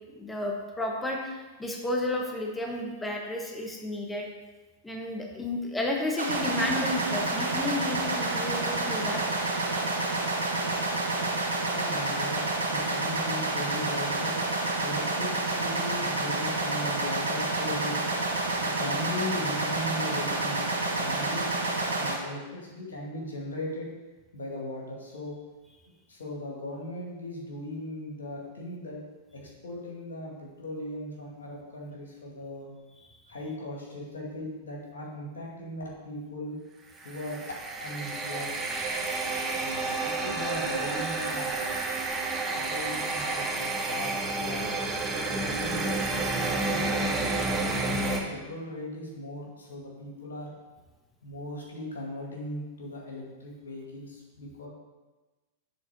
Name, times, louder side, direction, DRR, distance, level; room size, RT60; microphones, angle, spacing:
voice 1, 0.1-4.3 4.8-9.2, left 1 dB, 10° left, 0 dB, 1.1 m, -32 dB
sound 1, 6.2-22.1, right 2 dB, 90° right, 1.2 m, -29 dB
voice 2, 11.7-14.3 14.8-18.0 18.6-21.5 21.9-23.9 24.3-25.3 26.1-29.0 29.3-32.7 33.3-36.6 37.0-38.6 39.6-41.6 42.5-44.7 45.3-47.3 47.8-50.5 51.2-54.7, left 1 dB, 85° left, -2 dB, 2.2 m, -38 dB
sound 2, 37.0-48.2, right 3 dB, 20° right, 1.1 m, -30 dB
6.9 x 4.1 x 6.0 m, 1.2 s
hypercardioid pair, 105°, 0 cm